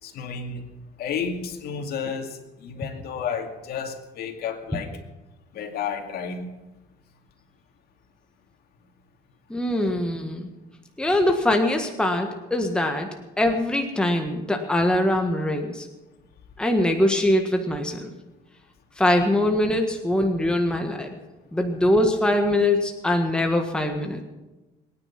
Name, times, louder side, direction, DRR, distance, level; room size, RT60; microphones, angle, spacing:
voice 1, 0.0-0.7 1.0-4.9 5.5-6.5, left 6 dB, 65° left, 4 dB, 2.4 m, -31 dB
voice 2, 9.5-10.5 11.0-13.1 13.4-15.9 16.6-18.1 19.0-21.1 21.5-24.2, left 1 dB, 5° left, 3 dB, 1.5 m, -22 dB
22.0 x 9.7 x 5.9 m, 1.1 s
cardioid pair, 110°, 17 cm